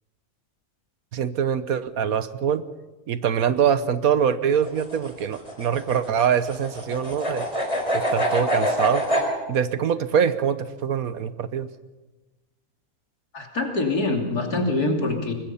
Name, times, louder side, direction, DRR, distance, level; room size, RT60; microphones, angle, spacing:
voice 1, 1.1-2.6 3.1-7.5 7.9-9.0 9.5-11.7, right 8 dB, 70° right, 13 dB, 1.4 m, -24 dB
sound 1, 4.5-9.3, equal, 20° left, 4.1 m, -26 dB
voice 2, 13.3-15.3, left 2 dB, 85° left, 2 dB, 3.5 m, -24 dB
24.5 x 20.5 x 5.6 m, 1.2 s
omnidirectional pair, 1.6 m